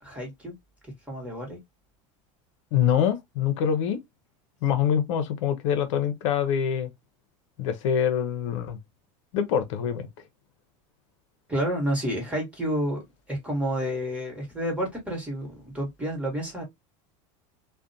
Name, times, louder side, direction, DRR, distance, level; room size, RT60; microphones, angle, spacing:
voice 1, 0.0-0.5 0.8-1.6 11.5-13.0 13.3-16.6, equal, 10° right, 1.1 m, -30 dB
voice 2, 2.7-4.0 4.6-6.9 7.6-8.8 9.3-10.1, left 8 dB, 75° left, 0.6 m, -25 dB
2.5 x 2.1 x 2.5 m
supercardioid pair, 135°, 16 cm